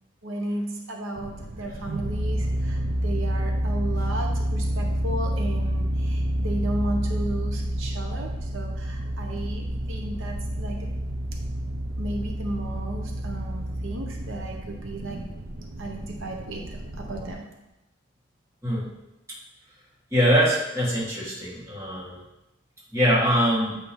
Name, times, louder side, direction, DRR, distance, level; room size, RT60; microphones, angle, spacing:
voice 1, 0.2-10.9 12.0-15.2 15.8-17.5, right 1 dB, 90° right, 1 dB, 0.9 m, -34 dB
sound 1, 1.2-17.3, right 1 dB, 45° right, 0.8 m, -29 dB
voice 2, 20.1-22.2 22.9-23.8, equal, 15° right, -7 dB, 1.8 m, -23 dB
8.2 x 2.9 x 5.1 m, 0.93 s
head